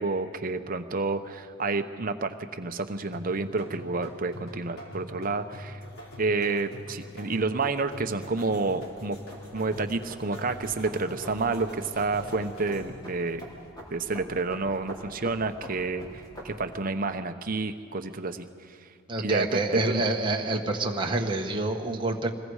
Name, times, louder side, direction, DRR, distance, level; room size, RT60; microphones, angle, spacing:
voice 1, 0.0-5.8 6.2-9.2 9.5-13.5 13.9-18.5 19.2-19.6 19.9-20.0, right 3 dB, 40° right, 7 dB, 0.9 m, -29 dB
sound 1, 3.1-13.1, left 1 dB, 75° left, 3.9 m, -44 dB
sound 2, 5.9-16.8, equal, 20° left, 4.1 m, -46 dB
voice 2, 19.1-22.3, right 2 dB, 25° right, 1 dB, 1.3 m, -27 dB
26.5 x 21.0 x 4.9 m, 2.2 s
head